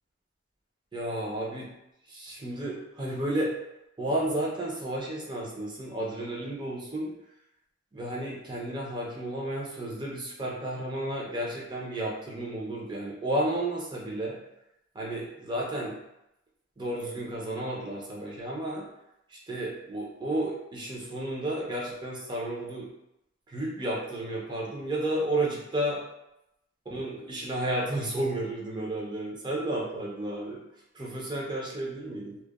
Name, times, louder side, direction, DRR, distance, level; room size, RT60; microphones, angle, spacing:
voice 1, 0.9-1.7 2.1-3.5 4.0-7.1 7.9-14.4 14.9-16.0 16.8-18.9 19.3-22.9 23.5-26.0 26.9-30.6 30.9-32.4, right 1 dB, 25° right, -3 dB, 0.5 m, -32 dB
2.8 x 2.1 x 2.3 m, 0.85 s
head